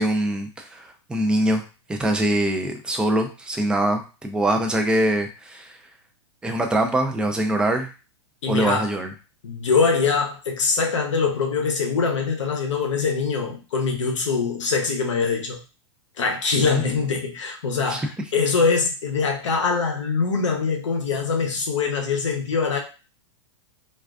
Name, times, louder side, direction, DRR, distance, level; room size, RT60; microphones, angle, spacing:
voice 1, 0.0-1.6 1.9-5.7 6.4-7.9 8.5-9.1 16.7-16.8 17.9-18.1, right 1 dB, 5° right, 4 dB, 0.3 m, -23 dB
voice 2, 8.4-8.9 9.4-15.6 16.2-22.8, left 5 dB, 90° left, 2 dB, 0.6 m, -23 dB
2.3 x 2.3 x 2.3 m, 0.32 s
hypercardioid pair, 120°, 15 cm